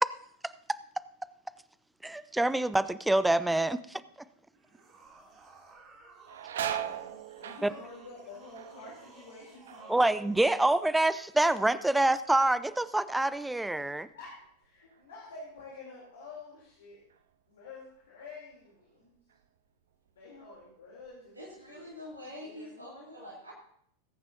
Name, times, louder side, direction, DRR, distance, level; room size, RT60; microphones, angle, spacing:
voice 1, 2.0-4.0 7.6-7.7 9.9-14.1, right 2 dB, 5° right, 16 dB, 0.4 m, -26 dB
sound 1, 4.5-10.8, right 3 dB, 30° right, 2.7 m, -55 dB
sound 2, 5.0-5.4 5.8-11.4 11.6-12.3 12.7-15.7 16.0-16.1 17.1-17.3 17.7-18.8 19.3-19.5 20.1-20.7 21.0-22.2, right 10 dB, 60° right, 0.6 m, -42 dB
voice 2, 6.6-10.0 11.9-12.0 14.1-17.0 17.5-19.2 20.1-21.9 22.4-22.8, left 3 dB, 60° left, -4 dB, 3.2 m, -49 dB
voice 3, 21.3-23.5, left 1 dB, 80° right, -4 dB, 3.3 m, -45 dB
20.5 x 9.4 x 2.7 m, 0.66 s
figure-of-eight pair, 90°, 0 cm